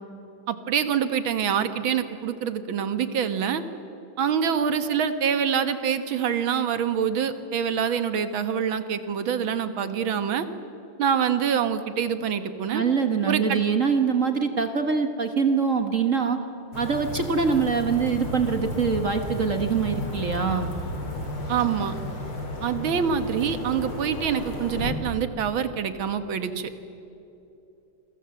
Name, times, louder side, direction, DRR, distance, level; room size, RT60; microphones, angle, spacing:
voice 1, 0.5-3.6 4.2-10.5 11.0-12.8 13.3-13.6 21.5-21.9 22.6-26.7, right 7 dB, 75° right, 10 dB, 2.1 m, -25 dB
voice 2, 12.7-16.4 16.7-20.7, right 5 dB, 40° right, 7 dB, 1.7 m, -24 dB
sound 1, 16.7-24.9, left 1 dB, 85° left, 4.3 m, -33 dB
28.0 x 23.0 x 7.8 m, 2.9 s
omnidirectional pair, 2.3 m